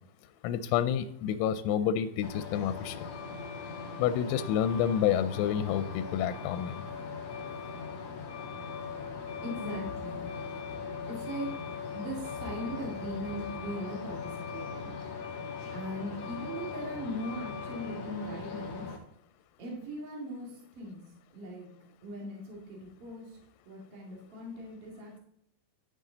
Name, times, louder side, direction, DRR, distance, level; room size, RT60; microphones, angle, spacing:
voice 1, 0.4-3.1 4.0-6.7, left 9 dB, 85° left, 11 dB, 3.3 m, -29 dB
Truck, 2.2-19.0, left 5 dB, 60° left, 1.6 m, -40 dB
voice 2, 9.4-10.3 11.1-11.5 11.9-15.0 15.7-18.9 19.6-20.5 20.8-21.0 21.3-21.7 22.0-23.2 23.7-25.2, equal, 45° right, -2 dB, 2.1 m, -39 dB
12.5 x 6.3 x 3.9 m, 0.73 s
omnidirectional pair, 6.0 m